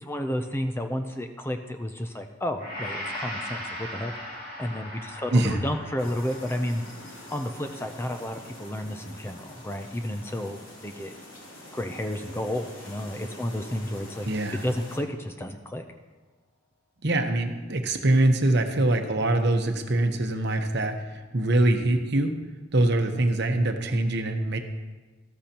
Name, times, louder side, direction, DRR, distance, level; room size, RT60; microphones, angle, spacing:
voice 1, 0.0-4.1 4.6-6.8 7.3-10.6 10.8-11.1 11.7-15.8, left 1 dB, 10° left, 5 dB, 0.5 m, -32 dB
Gong, 2.6-10.9 11.3-11.5, left 1 dB, 45° left, 2.5 m, -40 dB
sound 1, 6.0-15.0, left 1 dB, 75° left, 3.0 m, -45 dB
voice 2, 14.2-14.6 17.0-22.3 22.7-24.6, right 1 dB, 50° right, 5 dB, 1.0 m, -23 dB
13.5 x 13.5 x 2.9 m, 1.3 s
head